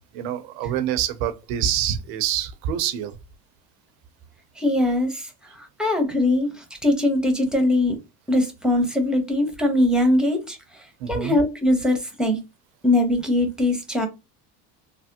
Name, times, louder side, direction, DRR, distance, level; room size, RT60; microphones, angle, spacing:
voice 1, 0.1-3.2 11.0-11.4, right 10 dB, 75° right, 0.8 m, -26 dB
voice 2, 4.6-5.3 5.8-8.0 8.3-10.6 11.1-12.4 12.8-14.1, left 1 dB, ahead, 1.0 m, -21 dB
3.3 x 2.1 x 2.8 m
hypercardioid pair, 75°, 50 cm